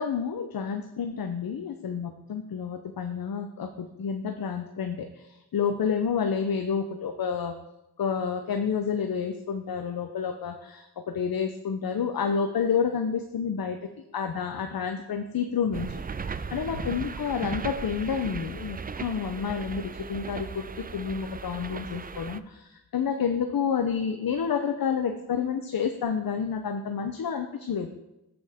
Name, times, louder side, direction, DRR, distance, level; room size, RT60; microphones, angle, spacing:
voice 1, 0.0-7.5 8.0-13.8 14.1-15.9 16.5-27.9, left 6 dB, 60° left, 6 dB, 0.8 m, -29 dB
sound 1, 15.7-22.4, right 5 dB, 25° right, 0.4 m, -37 dB
13.5 x 6.1 x 3.6 m, 0.91 s
cardioid pair, 50°, 40 cm